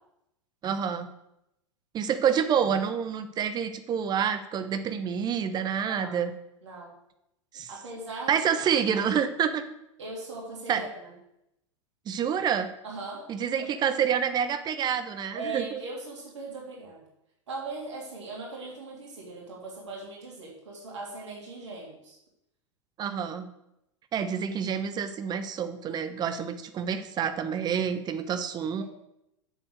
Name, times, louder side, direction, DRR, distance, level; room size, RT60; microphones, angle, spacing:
voice 1, 0.6-1.1 1.9-6.3 7.5-7.7 8.3-9.6 10.7-10.8 12.1-12.7 13.3-15.8 23.0-23.5 24.1-28.8, right 8 dB, 25° right, 10 dB, 1.0 m, -28 dB
voice 2, 5.8-6.2 6.6-6.9 7.7-8.4 10.0-11.1 12.8-13.2 13.6-13.7 15.3-17.0 17.5-22.2, right 3 dB, 65° right, -3 dB, 3.0 m, -39 dB
7.8 x 7.4 x 6.6 m, 0.85 s
figure-of-eight pair, 90°, 16 cm